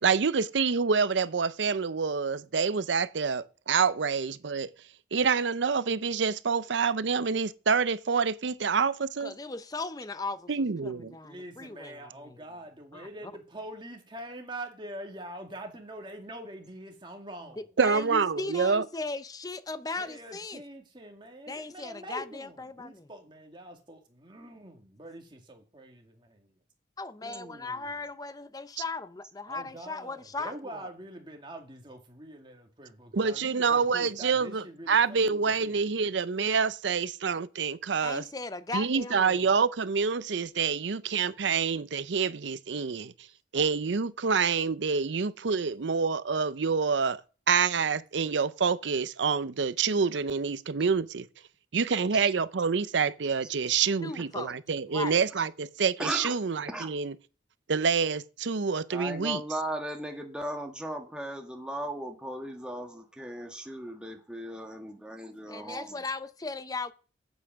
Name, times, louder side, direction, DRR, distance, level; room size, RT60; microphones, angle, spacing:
voice 1, 0.0-4.7 5.1-9.3 10.5-11.1 17.8-18.8 33.1-38.2 38.7-43.1 43.5-47.2 47.5-51.3 51.7-57.1 57.7-59.4, right 5 dB, 75° right, 0.6 m, -27 dB
voice 2, 9.2-12.4 12.9-13.3 17.6-20.6 21.5-23.1 27.0-30.8 38.0-39.5 54.0-54.6 54.9-55.1 65.5-66.9, left 3 dB, 20° left, 0.6 m, -38 dB
voice 3, 11.2-17.8 19.9-26.5 27.2-28.0 29.5-36.1, right 1 dB, 25° right, 2.1 m, -45 dB
voice 4, 56.0-56.4 56.7-56.9 58.9-66.0, right 1 dB, 5° right, 1.5 m, -37 dB
8.2 x 8.1 x 6.2 m
head